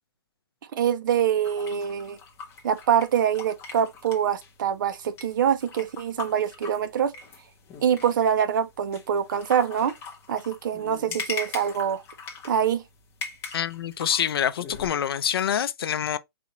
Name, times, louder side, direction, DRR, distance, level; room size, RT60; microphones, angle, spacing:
voice 1, 0.7-2.2 2.6-7.1 7.8-9.9 10.3-12.0 12.4-12.8, right 8 dB, 50° right, 0.6 m, -24 dB
sound 1, 1.4-14.9, left 5 dB, 20° left, 0.8 m, -41 dB
voice 2, 13.5-16.2, left 9 dB, 65° left, 0.5 m, -26 dB
4.1 x 2.4 x 2.9 m
hypercardioid pair, 160°, 14 cm